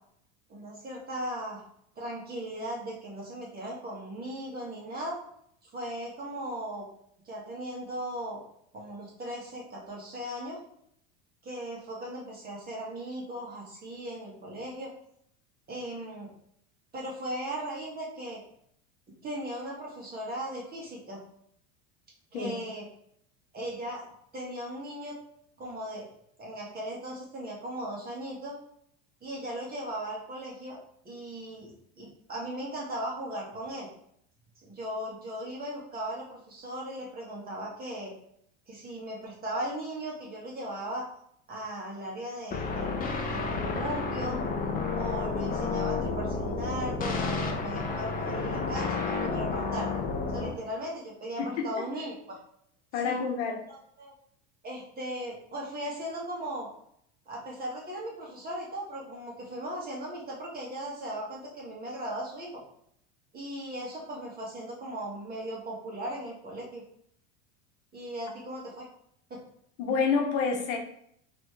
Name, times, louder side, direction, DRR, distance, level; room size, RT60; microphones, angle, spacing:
voice 1, 0.5-1.6 1.9-5.2 5.6-6.9 7.2-8.4 8.7-10.6 11.4-14.9 15.7-16.3 16.9-18.4 19.2-21.2 22.3-22.8 23.5-24.1 24.3-25.2 25.6-26.1 26.4-28.6 29.2-30.8 31.0-33.9 34.6-38.1 38.7-41.1 41.5-42.9 43.2-44.5 44.9-49.9 50.3-52.4 53.0-53.2 53.7-54.1 54.6-56.7 57.2-62.5 63.3-66.8 67.9-68.9 69.3-69.4, right 1 dB, 25° right, -4 dB, 1.6 m, -37 dB
sound 1, 42.5-50.5, left 4 dB, 25° left, 0.6 m, -31 dB
voice 2, 51.4-51.9 52.9-53.6 69.8-70.8, left 5 dB, 70° left, 3 dB, 0.9 m, -28 dB
4.1 x 3.1 x 3.3 m, 0.69 s
supercardioid pair, 115°, 36 cm